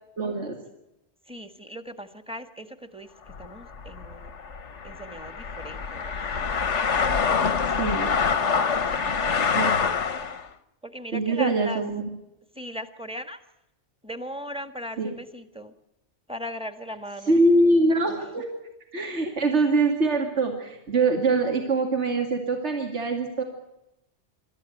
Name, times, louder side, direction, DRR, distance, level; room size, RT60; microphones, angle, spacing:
voice 1, 0.2-0.5 7.8-8.2 9.5-9.8 11.1-12.1 15.0-15.1 17.3-18.5 18.9-23.4, right 2 dB, 70° right, 2 dB, 2.6 m, -23 dB
voice 2, 1.3-3.1 3.4-4.3 4.8-6.2 10.8-11.8 12.5-13.4 14.0-15.7 16.3-17.4, equal, 5° right, 8 dB, 1.4 m, -38 dB
sound 1, 3.3-10.5, left 5 dB, 90° left, 1.5 m, -26 dB
26.0 x 13.5 x 9.1 m, 0.91 s
omnidirectional pair, 1.2 m